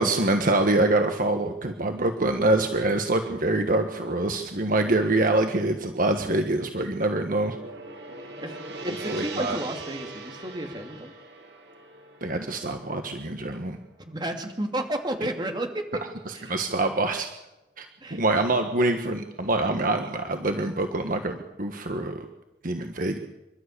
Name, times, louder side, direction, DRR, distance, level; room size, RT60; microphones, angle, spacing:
voice 1, 0.0-7.6 8.9-9.6 12.2-13.8 16.5-17.3 17.8-22.2 22.6-23.2, right 2 dB, 50° right, 5 dB, 1.5 m, -25 dB
voice 2, 4.8-5.2 8.4-8.6 8.8-11.1 14.0-16.0 16.3-16.5 18.0-18.2, right 1 dB, 25° right, 4 dB, 2.7 m, -32 dB
Gong, 6.5-14.8, right 2 dB, 70° right, 3.6 m, -42 dB
27.0 x 12.5 x 8.4 m, 0.96 s
head